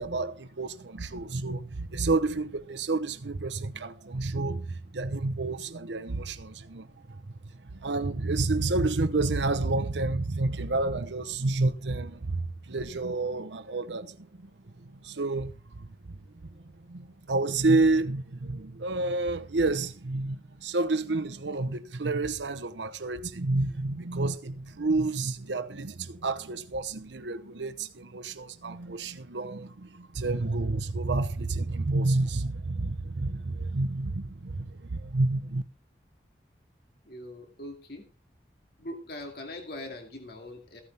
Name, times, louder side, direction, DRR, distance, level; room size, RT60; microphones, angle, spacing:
voice 1, 0.0-35.6, right 2 dB, 90° right, 0.9 m, -30 dB
voice 2, 37.0-38.1 38.8-40.8, left 1 dB, 55° left, 2.4 m, -41 dB
15.0 x 9.7 x 3.4 m
head